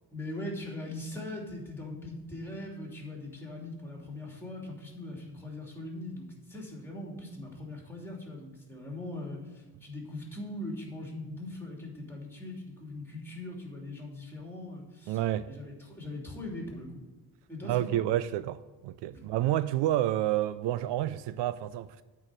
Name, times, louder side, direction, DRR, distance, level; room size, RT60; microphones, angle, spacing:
voice 1, 0.1-16.9 17.5-18.0 19.1-19.3, left 1 dB, 5° left, 2.8 m, -41 dB
voice 2, 15.1-15.5 17.6-22.0, right 13 dB, 75° right, 0.5 m, -29 dB
8.6 x 4.8 x 7.5 m
cardioid pair, 105°, 42 cm